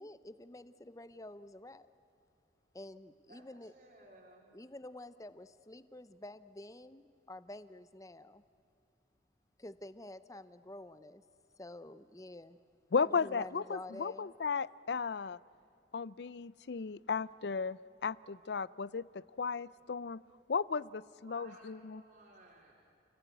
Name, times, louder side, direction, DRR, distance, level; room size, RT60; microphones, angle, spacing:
voice 1, 0.0-1.9 2.7-3.7 4.5-8.4 9.6-11.2 11.6-12.6 12.9-14.3, left 1 dB, 20° left, 13 dB, 0.7 m, -49 dB
voice 2, 3.3-4.5 21.2-22.7, right 2 dB, 50° right, -4 dB, 3.5 m, -58 dB
voice 3, 12.9-15.4 15.9-20.2 20.5-22.0, left 5 dB, 60° left, 20 dB, 0.5 m, -35 dB
29.5 x 17.0 x 9.3 m, 2.7 s
head